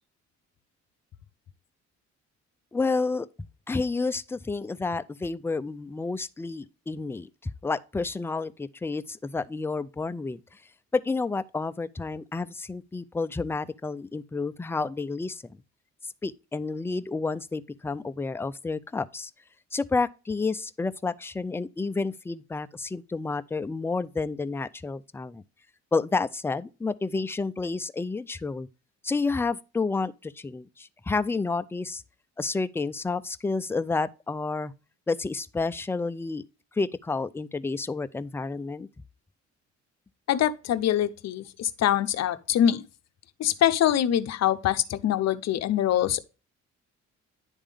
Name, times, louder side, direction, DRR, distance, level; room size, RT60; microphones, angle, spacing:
voice 1, 2.7-7.3 7.6-10.6 10.9-15.4 16.2-19.3 19.7-25.4 25.9-28.7 29.0-32.0 32.4-34.7 35.1-36.4 36.7-38.9, left 3 dB, 10° left, 0.3 m, -30 dB
voice 2, 40.3-42.8 43.4-46.2, left 11 dB, 60° left, 0.6 m, -24 dB
9.9 x 3.6 x 3.3 m
cardioid pair, 90°, 30 cm